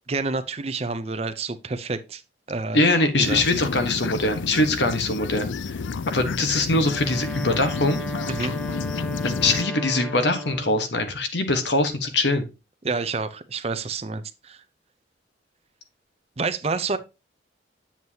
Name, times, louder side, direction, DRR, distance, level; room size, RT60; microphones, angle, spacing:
voice 1, 0.1-2.2 2.5-2.8 3.2-3.4 8.3-8.5 12.8-14.6 16.4-17.0, right 3 dB, 35° right, 0.6 m, -28 dB
voice 2, 2.7-5.8 6.1-8.0 9.2-12.5, left 2 dB, 70° left, 1.2 m, -22 dB
sound 1, 3.2-9.6, left 5 dB, 85° left, 0.5 m, -31 dB
Wind instrument woodwind instrument, 6.7-10.9, equal, 5° left, 0.7 m, -34 dB
7.9 x 7.3 x 2.8 m
head